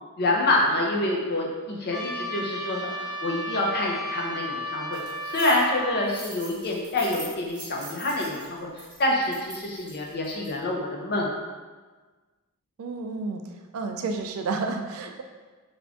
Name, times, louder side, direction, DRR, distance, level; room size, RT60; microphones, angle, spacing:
voice 1, 0.2-5.0 5.3-11.3, left 1 dB, 45° left, -1 dB, 0.6 m, -27 dB
Trumpet, 1.9-6.1, left 1 dB, 75° left, 0.9 m, -34 dB
sound 1, 4.9-5.6 6.0-10.5, right 2 dB, 20° right, 1.0 m, -42 dB
voice 2, 12.8-13.4 13.7-15.2, right 4 dB, 65° right, 5 dB, 0.4 m, -30 dB
3.5 x 2.5 x 3.5 m, 1.4 s
head